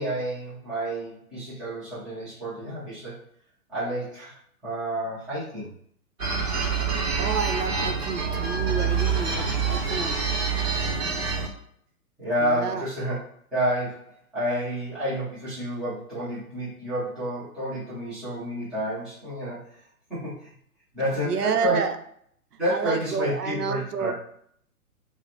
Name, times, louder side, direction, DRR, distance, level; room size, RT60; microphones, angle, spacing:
voice 1, 0.0-3.2 3.7-4.4 4.6-5.7 12.2-13.2 13.5-19.6 20.1-20.5 20.9-21.9 22.6-24.1, equal, ahead, -12 dB, 0.5 m, -29 dB
sound 1, 6.2-11.5, right 5 dB, 45° right, 1.1 m, -26 dB
voice 2, 7.2-10.2 12.4-12.8 21.2-22.0 22.7-24.1, right 6 dB, 85° right, 8 dB, 0.5 m, -29 dB
2.9 x 2.0 x 4.0 m, 0.65 s
figure-of-eight pair, 120°, 45 cm